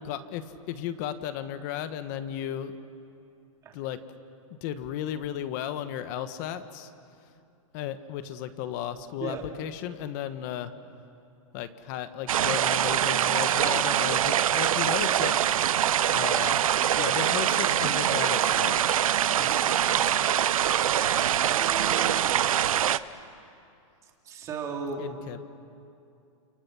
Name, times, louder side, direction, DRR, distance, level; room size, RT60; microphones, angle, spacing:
voice 1, 0.0-2.7 3.7-4.0 4.5-6.9 7.7-10.7 11.5-15.4 16.1-16.6 17.0-18.9 19.4-20.3 25.0-25.4, left 10 dB, 35° left, 11 dB, 1.3 m, -35 dB
sound 1, 12.3-23.0, right 10 dB, 75° right, 0.8 m, -24 dB
voice 2, 21.5-22.4 24.2-25.1, right 6 dB, 20° right, 1 dB, 2.9 m, -36 dB
29.5 x 28.5 x 6.1 m, 2.6 s
hypercardioid pair, 165°, 18 cm